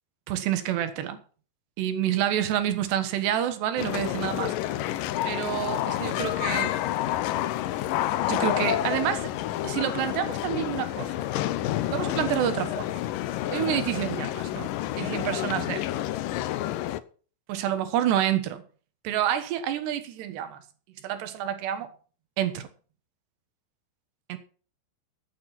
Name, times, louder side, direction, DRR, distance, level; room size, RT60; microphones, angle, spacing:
voice 1, 0.3-1.2 1.8-4.8 5.3-6.8 8.3-9.3 9.6-11.1 11.9-12.9 13.5-14.7 15.0-15.9 17.5-18.6 19.1-20.6 21.0-21.9 22.4-22.7 24.3-24.4, right 11 dB, 80° right, 3.5 m, -28 dB
sound 1, 3.8-17.0, left 13 dB, 80° left, 1.9 m, -29 dB
12.5 x 9.1 x 5.8 m
omnidirectional pair, 4.8 m